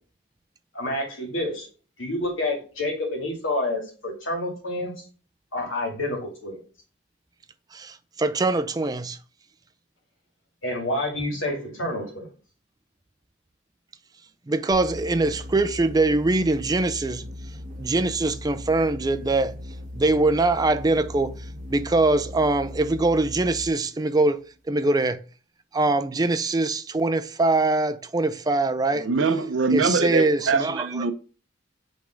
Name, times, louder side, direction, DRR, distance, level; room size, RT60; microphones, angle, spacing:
voice 1, 0.7-1.7 2.0-4.9 5.5-6.6 10.6-12.3, left 1 dB, 75° left, 2.3 m, -28 dB
voice 2, 7.7-9.2 14.5-17.2 17.8-19.5 19.9-21.4 21.7-24.4 24.7-25.2 25.7-29.1 29.7-31.1, right 2 dB, 20° right, 0.4 m, -23 dB
sound 1, 14.7-23.8, left 1 dB, 40° right, 1.5 m, -38 dB
voice 3, 28.9-31.1, right 4 dB, 65° right, 0.7 m, -23 dB
5.3 x 3.5 x 5.1 m
head